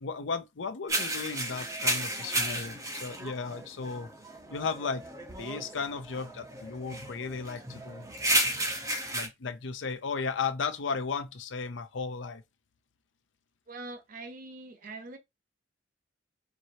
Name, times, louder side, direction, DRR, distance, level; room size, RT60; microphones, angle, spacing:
voice 1, 0.0-4.1 4.5-5.0 5.4-8.1 8.8-12.4, left 5 dB, 80° left, 0.6 m, -35 dB
sound 1, 0.9-9.3, right 1 dB, 15° right, 1.0 m, -33 dB
voice 2, 13.7-15.2, right 2 dB, 45° right, 0.7 m, -43 dB
4.6 x 2.9 x 2.8 m
head